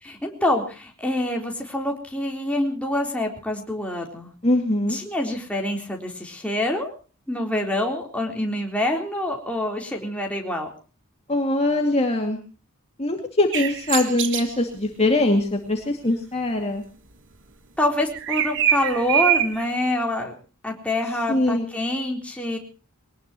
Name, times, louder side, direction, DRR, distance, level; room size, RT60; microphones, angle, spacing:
voice 1, 0.0-4.3 4.9-6.9 7.3-10.7 17.8-20.4 20.6-22.6, left 1 dB, 5° left, 0 dB, 3.8 m, -26 dB
voice 2, 4.4-5.0 11.3-12.4 13.0-16.8 21.3-21.7, left 2 dB, 30° left, 2 dB, 2.3 m, -22 dB
sound 1, 13.5-14.5 18.1-19.6, right 10 dB, 60° right, 1.6 m, -23 dB
23.0 x 19.0 x 3.0 m, 0.37 s
head